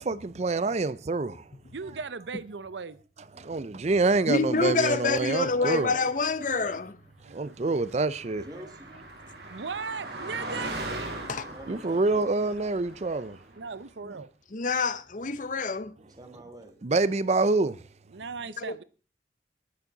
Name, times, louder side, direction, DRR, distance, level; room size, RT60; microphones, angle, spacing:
voice 1, 0.0-1.4 3.4-5.9 6.6-6.7 7.3-8.5 11.7-13.4 16.8-17.8, right 3 dB, 40° right, 0.5 m, -26 dB
voice 2, 1.7-3.0 7.2-7.8 9.5-10.8 13.5-14.3 18.1-18.8, right 5 dB, 90° right, 0.7 m, -37 dB
voice 3, 4.3-7.0 11.3-11.5 14.5-15.9, left 4 dB, 45° left, 0.8 m, -27 dB
Car passing by, 7.6-13.6, right 2 dB, 65° right, 3.4 m, -39 dB
voice 4, 8.3-9.0 11.5-12.5 16.2-16.8, right 1 dB, 20° right, 2.2 m, -47 dB
19.0 x 7.2 x 4.0 m
head